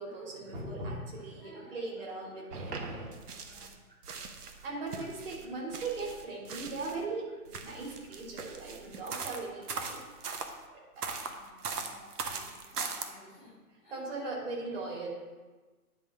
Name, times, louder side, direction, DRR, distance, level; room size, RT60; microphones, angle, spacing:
voice 1, 0.0-3.1 3.9-10.0 10.7-11.1 13.9-15.1, right 3 dB, 40° right, -3 dB, 2.4 m, -39 dB
voice 2, 1.3-2.1 2.7-3.8 10.9-13.6 13.8-14.2 14.7-15.1, left 1 dB, ahead, -15 dB, 0.8 m, -57 dB
sound 1, 2.5-3.8 4.0-7.0 7.5-10.5 11.0-13.1, right 4 dB, 75° right, 1.1 m, -40 dB
10.0 x 3.8 x 5.5 m, 1.3 s
hypercardioid pair, 165°, 46 cm